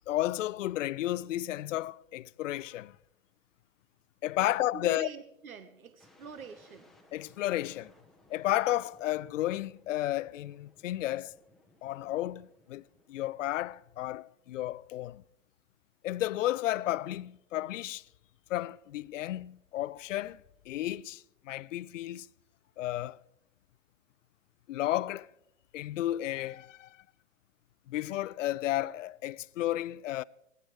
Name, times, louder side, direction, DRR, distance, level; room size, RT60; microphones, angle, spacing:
voice 1, 0.1-3.0 4.2-5.1 7.1-7.9 8.3-11.3 11.8-12.8 13.1-15.2 16.0-18.0 18.5-22.3 22.8-23.2 24.7-25.3 25.7-27.0 27.9-30.2, left 14 dB, 65° left, 0.5 m, -32 dB
voice 2, 4.4-6.9, right 5 dB, 90° right, 1.3 m, -45 dB
sound 1, 6.0-13.9, left 2 dB, ahead, 0.7 m, -63 dB
18.5 x 15.5 x 3.2 m
hypercardioid pair, 135°, 41 cm